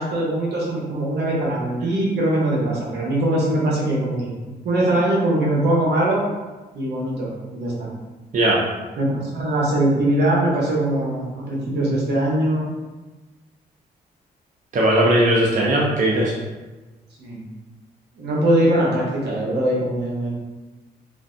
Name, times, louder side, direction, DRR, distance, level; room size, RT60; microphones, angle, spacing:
voice 1, 0.0-4.3 4.6-6.2 6.7-7.9 9.0-12.7 17.2-17.4 18.1-20.3, right 1 dB, 75° right, -3 dB, 1.0 m, -21 dB
voice 2, 14.7-16.3, right 1 dB, 50° right, -4 dB, 0.6 m, -18 dB
3.2 x 2.5 x 2.6 m, 1.2 s
cardioid pair, 65°, 18 cm